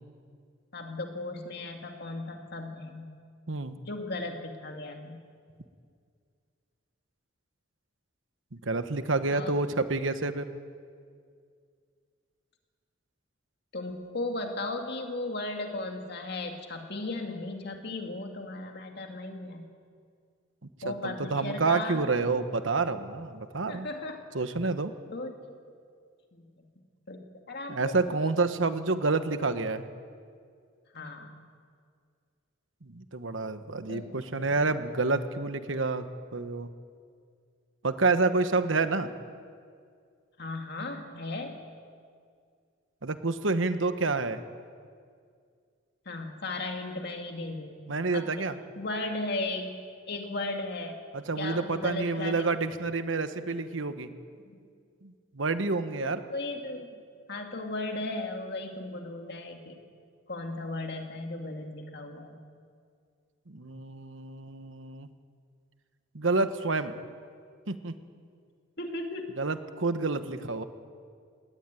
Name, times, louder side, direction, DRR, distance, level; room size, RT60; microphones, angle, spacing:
voice 1, 0.7-3.1 3.8-5.2 9.3-9.5 13.7-19.7 20.8-22.1 23.7-24.2 25.1-25.6 26.3-26.7 27.1-28.2 30.9-31.3 33.9-34.7 40.4-41.6 46.1-47.7 48.1-48.3 48.8-49.8 50.1-51.0 51.4-52.5 54.5-54.7 56.0-57.0 57.3-59.8 60.3-62.4 68.8-69.4, left 2 dB, 55° left, 3 dB, 2.5 m, -36 dB
voice 2, 8.5-10.5 20.8-23.9 24.3-24.9 27.7-29.9 32.8-36.0 36.3-36.7 37.8-39.1 43.0-44.4 47.9-48.5 51.1-54.1 55.0-56.2 63.5-65.1 66.1-67.0 67.7-67.9 69.4-70.6, right 3 dB, 75° right, 10 dB, 1.2 m, -28 dB
19.5 x 18.5 x 9.2 m, 2.2 s
head